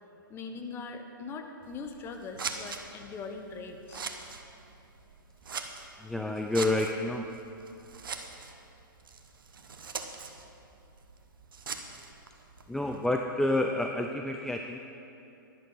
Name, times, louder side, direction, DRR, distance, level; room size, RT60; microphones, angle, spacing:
voice 1, 0.3-4.1, left 4 dB, 20° left, 5 dB, 1.0 m, -41 dB
Scissors, 1.6-13.1, right 5 dB, 70° right, 1.0 m, -43 dB
voice 2, 6.0-7.3 12.7-14.8, left 1 dB, 5° left, 3 dB, 0.4 m, -29 dB
11.5 x 10.5 x 5.6 m, 2.8 s
figure-of-eight pair, 115°, 12 cm